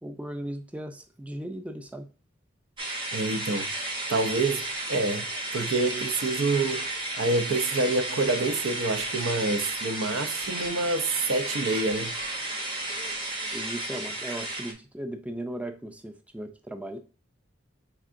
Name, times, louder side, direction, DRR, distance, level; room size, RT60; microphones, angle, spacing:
voice 1, 0.0-2.1 13.5-17.0, right 1 dB, 5° right, 0.4 m, -37 dB
sound 1, 2.8-14.7, right 2 dB, 25° right, 0.8 m, -33 dB
voice 2, 3.1-3.7 4.1-5.3 5.5-6.9 7.2-12.1, right 3 dB, 75° right, 0.5 m, -27 dB
5.4 x 3.5 x 2.5 m
head